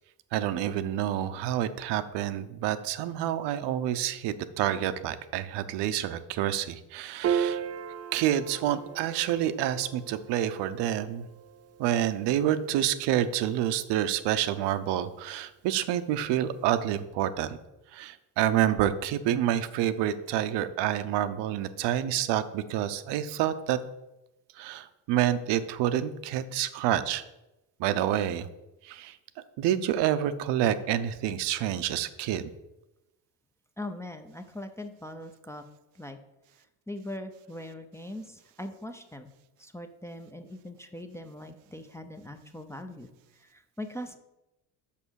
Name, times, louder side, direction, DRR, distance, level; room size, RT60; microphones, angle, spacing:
voice 1, 0.3-7.6 8.1-11.3 11.8-17.6 17.9-23.8 24.6-27.2 27.8-28.5 28.9-29.1 29.6-32.5, right 11 dB, 70° right, 12 dB, 0.7 m, -28 dB
Piano, 7.2-13.9, right 8 dB, 35° right, 0.5 m, -36 dB
voice 2, 33.8-35.6 35.9-36.2 36.9-39.3 39.6-43.1 43.4-44.2, left 1 dB, 5° left, 5 dB, 0.5 m, -41 dB
6.1 x 5.7 x 6.3 m, 0.95 s
cardioid pair, 110°, 43 cm